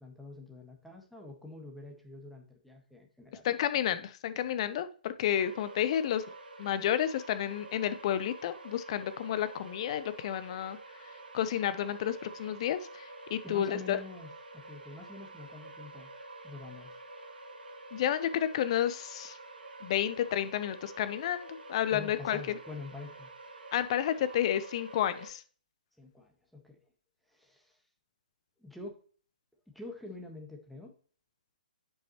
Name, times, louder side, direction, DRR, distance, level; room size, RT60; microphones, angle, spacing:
voice 1, 0.0-3.4 13.4-16.1 16.4-17.0 21.9-23.3 26.0-26.8 27.3-27.8 28.6-29.0 29.7-30.9, left 3 dB, ahead, 1 dB, 1.4 m, -46 dB
voice 2, 3.4-6.2 6.6-10.8 11.3-14.0 17.9-19.4 19.8-22.6 23.7-25.4, left 10 dB, 40° left, 13 dB, 0.7 m, -31 dB
sound 1, 5.3-25.3, right 2 dB, 80° right, 1.6 m, -48 dB
10.0 x 5.5 x 3.0 m, 0.42 s
figure-of-eight pair, 130°, 5 cm